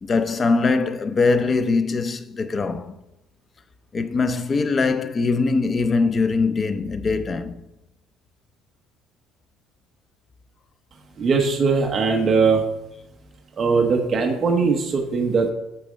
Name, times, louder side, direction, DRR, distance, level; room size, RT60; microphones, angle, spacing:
voice 1, 0.0-3.0 3.9-7.6, left 4 dB, 25° left, 0.5 m, -22 dB
voice 2, 11.2-12.6 13.6-15.5, right 4 dB, 25° right, 0.9 m, -20 dB
8.7 x 4.2 x 6.3 m
cardioid pair, 165°, 0 cm